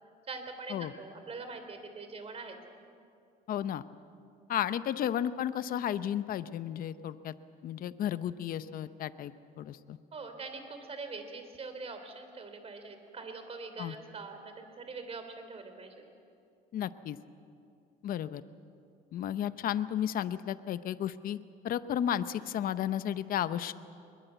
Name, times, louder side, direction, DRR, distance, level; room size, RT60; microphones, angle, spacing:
voice 1, 0.3-2.6 10.1-16.0, right 4 dB, 35° right, 7 dB, 3.4 m, -43 dB
voice 2, 3.5-3.8 4.5-7.3 7.6-10.0 13.8-14.0 16.7-17.2 18.0-18.4 19.1-21.4 21.6-23.7, left 10 dB, 60° left, 13 dB, 0.8 m, -33 dB
22.5 x 21.5 x 8.2 m, 2.5 s
cardioid pair, 110°, 17 cm